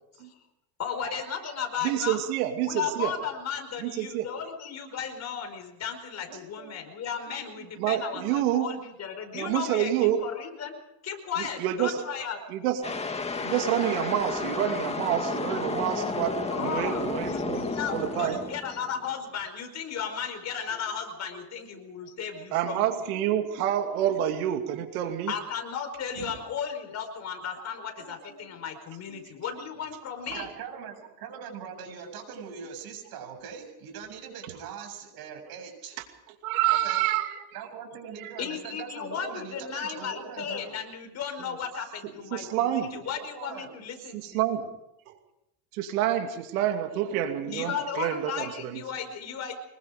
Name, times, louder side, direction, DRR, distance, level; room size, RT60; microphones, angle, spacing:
voice 1, 0.8-2.2 2.6-10.7 11.0-12.4 16.5-23.0 25.3-30.5 38.4-44.5 47.1-49.5, left 7 dB, 40° left, 5 dB, 5.0 m, -35 dB
voice 2, 1.8-3.1 3.8-4.3 6.6-6.7 7.8-8.7 9.3-10.2 11.4-12.0 12.5-12.9 13.4-17.6 17.9-18.4 22.3-25.3 26.2-26.3 30.3-30.4 36.4-37.4 38.2-38.4 42.3-42.9 44.1-44.7 45.1-45.2 45.7-48.8, right 11 dB, 85° right, 5 dB, 2.6 m, -28 dB
sound 1, 12.8-19.1, left 4 dB, 15° left, 2.0 m, -32 dB
voice 3, 30.3-36.0 36.7-37.0 37.5-40.8 43.3-43.7, right 6 dB, 55° right, 5 dB, 7.4 m, -41 dB
25.5 x 22.0 x 5.2 m, 0.87 s
supercardioid pair, 120°, 42 cm